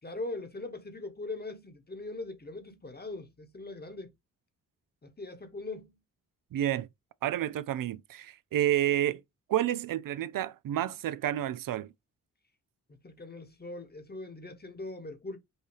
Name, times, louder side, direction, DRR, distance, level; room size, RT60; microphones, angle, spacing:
voice 1, 0.0-4.1 5.0-6.0 13.0-15.4, left 2 dB, 25° left, 1.3 m, -41 dB
voice 2, 6.5-6.9 7.2-9.2 9.5-11.9, right 12 dB, 55° right, 0.5 m, -30 dB
5.6 x 2.7 x 3.3 m
hypercardioid pair, 40°, 40 cm